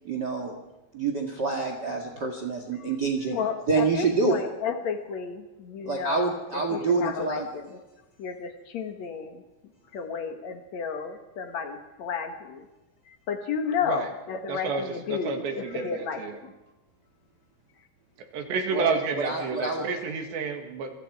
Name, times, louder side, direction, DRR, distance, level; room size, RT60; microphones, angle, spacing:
voice 1, 0.0-0.6 0.9-3.4 3.7-4.4 5.8-7.5 18.7-19.8, right 3 dB, 60° right, 3 dB, 1.1 m, -27 dB
voice 2, 3.3-7.8 8.2-9.4 9.9-12.7 13.1-16.5, left 6 dB, 55° left, 6 dB, 2.0 m, -33 dB
voice 3, 14.5-14.8 15.1-16.4 18.3-20.9, right 5 dB, 75° right, 4 dB, 4.2 m, -30 dB
27.5 x 24.0 x 4.8 m, 1.1 s
omnidirectional pair, 5.1 m